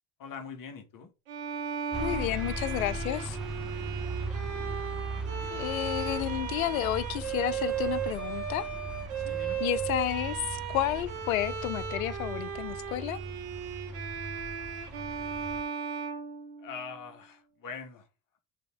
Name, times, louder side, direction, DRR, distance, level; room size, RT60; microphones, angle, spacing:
voice 1, 0.2-1.1 3.8-4.1 9.2-9.6 16.6-18.1, left 5 dB, 55° left, 2.2 m, -43 dB
Bowed string instrument, 1.3-17.0, right 7 dB, 85° right, 1.4 m, -36 dB
sound 1, 1.9-15.6, right 2 dB, ahead, 0.9 m, -39 dB
voice 2, 2.0-3.4 5.5-8.7 9.6-13.2, left 12 dB, 90° left, 0.6 m, -31 dB
5.8 x 3.5 x 4.8 m
hypercardioid pair, 65°, 40 cm